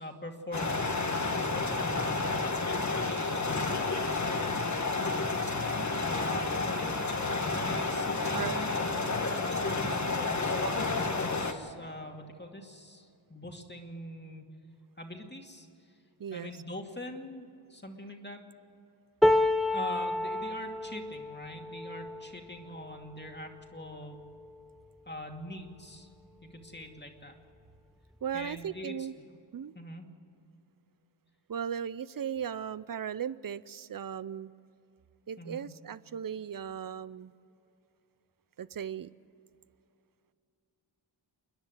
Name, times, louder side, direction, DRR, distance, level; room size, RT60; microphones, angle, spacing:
voice 1, 0.0-2.4 2.9-4.7 6.1-14.4 15.0-15.9 16.3-18.4 19.7-24.2 25.1-26.1 26.4-27.3 28.3-29.2 29.7-30.1 35.4-35.7, left 1 dB, 25° left, 3 dB, 2.3 m, -43 dB
sound 1, 0.5-11.5, left 3 dB, 40° left, 1.5 m, -30 dB
voice 2, 16.2-16.5 28.2-29.1 29.5-29.7 31.5-34.5 35.3-37.3 38.6-39.1, right 8 dB, 50° right, 18 dB, 0.6 m, -37 dB
sound 2, 19.2-25.4 25.9-26.1 26.4-27.2 28.2-28.3, left 1 dB, ahead, 0.6 m, -31 dB
29.0 x 10.5 x 9.2 m, 2.6 s
wide cardioid pair, 70°, 45 cm